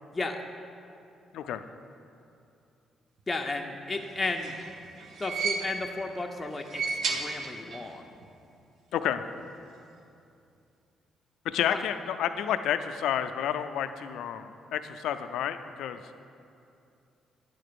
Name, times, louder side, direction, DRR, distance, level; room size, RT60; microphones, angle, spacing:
voice 1, 3.3-4.6 5.2-8.1 11.7-11.8, left 3 dB, 20° left, 2 dB, 0.5 m, -33 dB
sound 1, 4.1-6.1 6.5-8.0 8.2-8.3 9.4-9.5, right 4 dB, 60° right, 0.7 m, -34 dB
voice 2, 8.9-9.2 11.4-16.0, left 9 dB, 80° left, 10 dB, 0.3 m, -30 dB
9.2 x 3.9 x 6.7 m, 2.6 s
cardioid pair, 90°, 0 cm